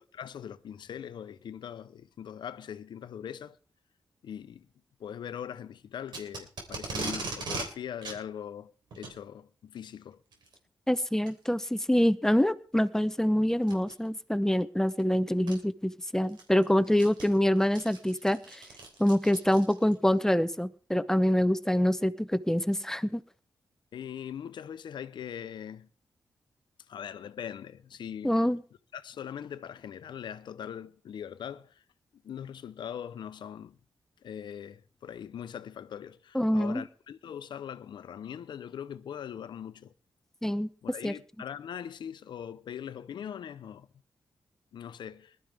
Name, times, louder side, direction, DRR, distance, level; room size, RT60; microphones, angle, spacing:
voice 1, 0.0-3.6 4.2-4.7 5.0-10.2 23.9-25.9 26.9-28.3 28.9-31.8 32.2-33.8 34.2-39.9 40.8-43.9 44.7-45.4, left 9 dB, 85° left, 0.8 m, -41 dB
Packing tape duct tape, 6.1-7.7 8.0-8.2 8.9-9.2 10.3-10.5 11.2-11.3 12.0-12.1 13.6-13.9 15.0-15.1 15.5-15.6 16.1-20.0, right 3 dB, 75° right, 3.6 m, -38 dB
voice 2, 10.9-18.6 19.0-23.2 28.2-28.6 36.3-36.8 40.4-40.7 41.0-41.1, equal, 5° left, 0.8 m, -26 dB
20.5 x 12.0 x 3.5 m
cardioid pair, 90°, 8 cm